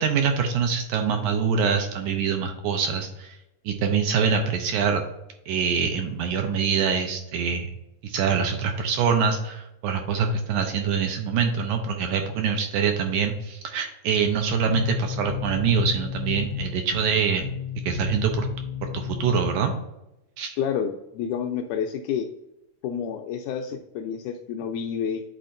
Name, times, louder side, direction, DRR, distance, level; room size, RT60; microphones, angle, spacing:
voice 1, 0.0-3.4 3.7-5.0 5.5-7.7 8.0-17.5 17.8-18.5 18.8-19.7 20.4-20.6, right 6 dB, 80° right, 4 dB, 1.9 m, -24 dB
sound 1, 14.2-19.6, left 7 dB, 65° left, 1.1 m, -33 dB
voice 2, 20.6-22.3 22.8-25.2, left 7 dB, 80° left, 5 dB, 1.8 m, -29 dB
10.0 x 4.2 x 2.5 m, 0.88 s
omnidirectional pair, 4.0 m